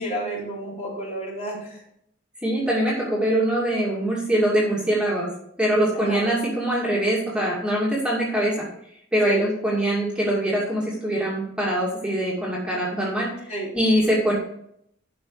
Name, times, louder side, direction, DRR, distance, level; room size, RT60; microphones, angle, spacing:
voice 1, 0.0-1.8 5.9-6.3 9.2-9.4 13.5-13.7, right 1 dB, 35° left, -4 dB, 3.7 m, -30 dB
voice 2, 2.4-5.3 5.6-8.7 9.1-14.3, right 1 dB, 5° right, -5 dB, 2.4 m, -23 dB
11.0 x 5.9 x 4.8 m, 0.71 s
head